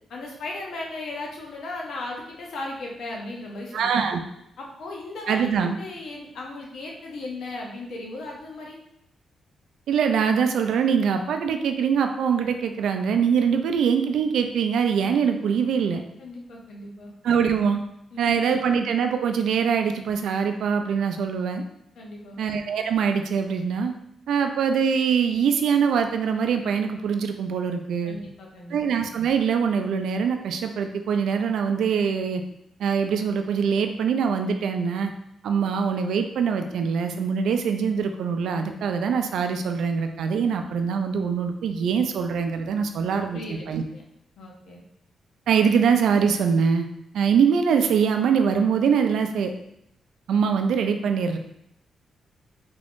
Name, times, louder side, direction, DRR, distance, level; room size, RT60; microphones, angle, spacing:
voice 1, 0.1-4.1 4.6-8.8 16.2-17.1 18.1-18.6 22.0-22.4 28.0-28.8 43.3-43.6 43.9-44.0 44.4-44.8, left 2 dB, 70° left, -1 dB, 0.8 m, -36 dB
voice 2, 3.7-4.2 5.3-5.8 9.9-16.0 17.2-17.8 18.2-21.6 22.4-23.9 24.3-28.2 28.7-32.4 32.8-35.1 35.4-43.8 45.5-46.9 47.1-49.5 50.3-51.4, right 6 dB, 90° right, 6 dB, 0.4 m, -23 dB
3.6 x 3.5 x 2.5 m, 0.79 s
wide cardioid pair, 155°, 0 cm